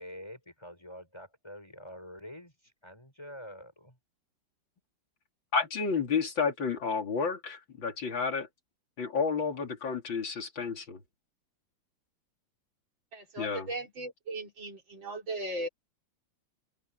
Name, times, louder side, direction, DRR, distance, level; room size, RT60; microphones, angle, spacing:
voice 1, 0.0-4.0, equal, 15° left, 6.5 m, -47 dB
voice 2, 5.5-8.5 9.0-11.0 13.4-13.7, left 5 dB, 85° left, 3.5 m, -31 dB
voice 3, 13.1-15.7, right 1 dB, 85° right, 4.6 m, -37 dB
omnidirectional pair, 2.1 m